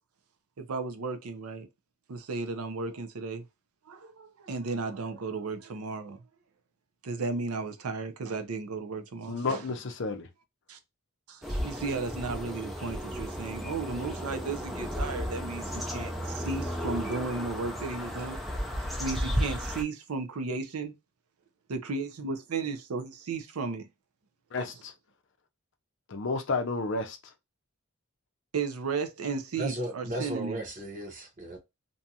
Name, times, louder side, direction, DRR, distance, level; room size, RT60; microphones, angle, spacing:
voice 1, 0.6-1.7 2.1-3.4 3.9-6.2 7.0-9.7 10.7-10.8 11.3-18.4 19.0-20.9 21.7-23.9 24.6-24.7 28.5-30.6, right 4 dB, 90° right, 0.6 m, -34 dB
voice 2, 9.3-10.3 24.5-24.9 26.1-27.2, left 3 dB, 55° left, 0.5 m, -31 dB
sound 1, 11.4-19.8, equal, ahead, 0.4 m, -34 dB
voice 3, 29.6-31.6, right 1 dB, 35° right, 0.9 m, -35 dB
2.6 x 2.3 x 2.7 m
head